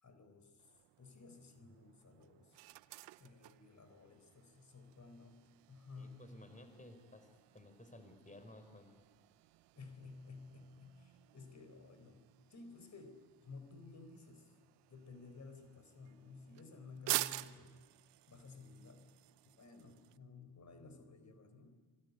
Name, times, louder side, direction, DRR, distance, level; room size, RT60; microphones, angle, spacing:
voice 1, 0.0-0.7 1.0-2.6 3.2-5.4 5.7-6.2 9.7-12.2 12.5-14.5 14.9-17.8 18.3-19.1 19.4-21.7, left 3 dB, 40° left, 8 dB, 4.5 m, -55 dB
sound 1, 0.6-20.2, right 18 dB, 85° right, 0.8 m, -49 dB
voice 2, 6.0-8.9, left 1 dB, 20° left, 7 dB, 4.5 m, -56 dB
25.0 x 22.0 x 9.6 m, 1.4 s
supercardioid pair, 75°, 41 cm